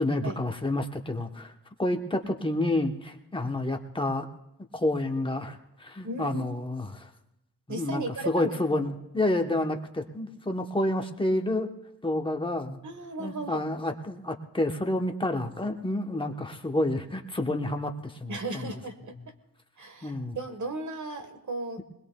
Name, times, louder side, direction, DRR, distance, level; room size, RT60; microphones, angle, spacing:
voice 1, 0.0-1.5 1.8-4.3 4.7-7.1 7.7-11.7 12.0-12.8 13.2-18.7 20.0-20.4, left 1 dB, 15° left, 4 dB, 0.9 m, -29 dB
voice 2, 6.0-6.4 7.7-8.6 12.8-13.6 18.3-19.3 19.8-21.8, right 2 dB, 50° right, 7 dB, 1.4 m, -35 dB
22.0 x 20.5 x 2.2 m, 0.86 s
wide cardioid pair, 130°, 37 cm